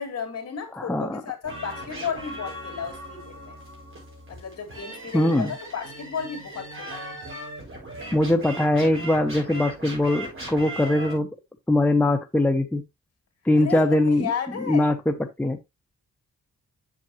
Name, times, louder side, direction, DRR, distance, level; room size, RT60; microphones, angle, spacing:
voice 1, 0.0-3.6 4.3-7.1 13.6-14.9, left 6 dB, 55° left, 2.4 m, -33 dB
voice 2, 0.7-1.2 5.1-5.5 8.1-11.3 11.7-12.8 13.4-14.3 14.7-15.6, left 1 dB, 5° left, 0.7 m, -22 dB
sound 1, 1.4-11.1, right 1 dB, 45° right, 5.3 m, -38 dB
7.4 x 7.1 x 2.9 m
wide cardioid pair, 125°, 31 cm